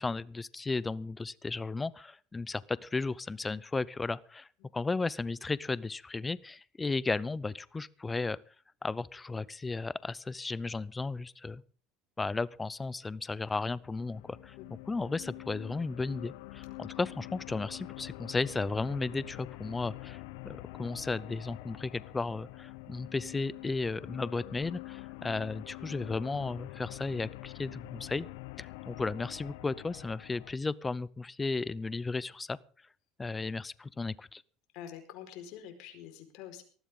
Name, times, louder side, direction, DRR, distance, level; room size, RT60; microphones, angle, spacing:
voice 1, 0.0-4.5 4.7-8.4 8.8-11.6 12.2-14.6 14.9-28.3 28.6-32.6 33.2-34.4, left 3 dB, 15° left, 20 dB, 0.7 m, -34 dB
sound 1, 13.5-30.5, left 20 dB, 85° left, 0.8 m, -46 dB
voice 2, 34.7-36.6, left 9 dB, 65° left, 6 dB, 4.6 m, -46 dB
19.5 x 14.0 x 3.8 m, 0.42 s
supercardioid pair, 115°, 0 cm